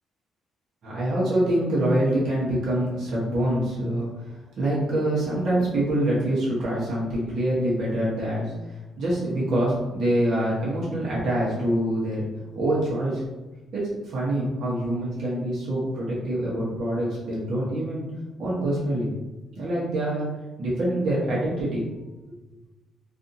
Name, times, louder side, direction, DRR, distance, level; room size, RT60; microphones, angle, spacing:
voice 1, 0.8-12.2 12.5-13.2 13.7-18.1 18.4-19.1 19.6-20.3 20.6-21.9, right 1 dB, 65° right, -7 dB, 1.0 m, -25 dB
2.6 x 2.5 x 2.6 m, 1.1 s
cardioid pair, 90°, 0 cm